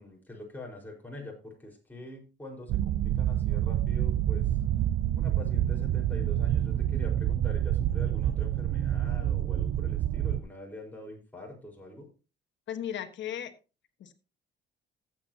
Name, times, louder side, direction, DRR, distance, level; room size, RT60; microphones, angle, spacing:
voice 1, 0.0-4.6 5.1-12.1, left 1 dB, 10° left, -1 dB, 4.5 m, -44 dB
sound 1, 2.7-10.4, right 12 dB, 65° right, 0.5 m, -27 dB
voice 2, 12.7-13.5 14.0-14.1, left 10 dB, 65° left, 9 dB, 1.3 m, -35 dB
15.0 x 8.0 x 2.8 m, 0.31 s
cardioid pair, 90°, 20 cm